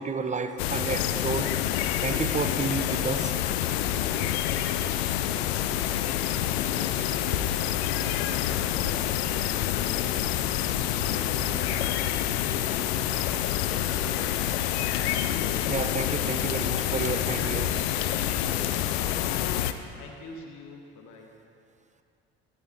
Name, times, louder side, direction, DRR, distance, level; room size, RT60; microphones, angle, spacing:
voice 1, 0.0-1.5 2.0-3.3 15.7-17.7, right 4 dB, 25° right, 8 dB, 0.9 m, -31 dB
sound 1, 0.6-19.7, left 11 dB, 80° left, 0.6 m, -27 dB
voice 2, 5.5-12.7 13.0-14.8 19.9-21.3, left 4 dB, 65° left, 1 dB, 1.8 m, -45 dB
13.5 x 12.5 x 3.5 m, 2.5 s
hypercardioid pair, 60°, 31 cm